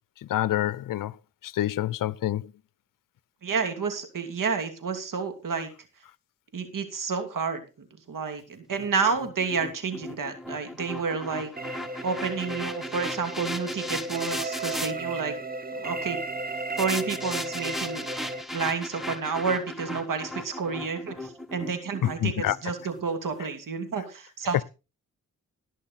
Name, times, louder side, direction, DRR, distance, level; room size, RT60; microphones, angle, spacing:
voice 1, 0.3-1.1 1.4-2.5 22.0-22.6, left 13 dB, 70° left, 0.6 m, -27 dB
voice 2, 3.4-5.7 6.5-11.5 12.0-15.4 15.8-16.2 16.8-18.0 18.5-24.6, right 5 dB, 70° right, 2.8 m, -30 dB
sound 1, 8.7-14.9 16.8-23.0, left 1 dB, ahead, 1.9 m, -37 dB
sound 2, 11.6-18.4, right 2 dB, 25° right, 1.5 m, -35 dB
18.5 x 6.4 x 4.2 m
cardioid pair, 50°, 34 cm